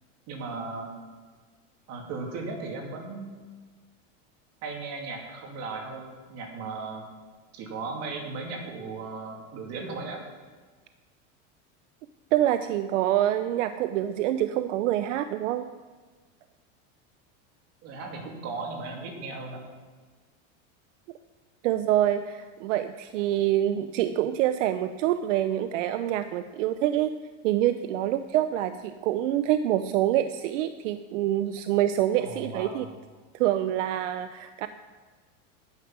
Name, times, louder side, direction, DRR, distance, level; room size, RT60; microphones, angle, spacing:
voice 1, 0.3-0.9 1.9-3.3 4.6-7.1 7.5-10.2 17.8-19.6 32.2-32.9, right 3 dB, 40° right, 1 dB, 2.5 m, -36 dB
voice 2, 12.3-15.7 21.6-27.1 27.4-32.9 33.3-34.7, right 12 dB, 75° right, 11 dB, 0.6 m, -26 dB
9.7 x 9.5 x 6.0 m, 1.4 s
supercardioid pair, 155°, 37 cm